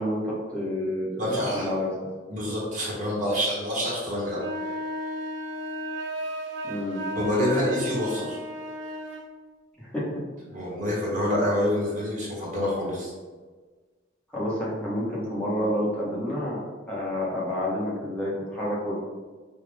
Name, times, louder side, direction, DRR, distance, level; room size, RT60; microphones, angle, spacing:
voice 1, 0.0-1.1 1.4-1.9 6.6-7.0 9.8-10.1 14.3-16.6 16.9-18.9, left 1 dB, 5° left, -8 dB, 1.3 m, -29 dB
voice 2, 1.2-1.7 2.3-4.9 7.1-8.4 10.5-13.1, left 1 dB, 45° right, -5 dB, 1.3 m, -27 dB
sound 1, 4.3-9.3, equal, 70° right, 0.6 m, -34 dB
5.6 x 2.4 x 3.5 m, 1.4 s
head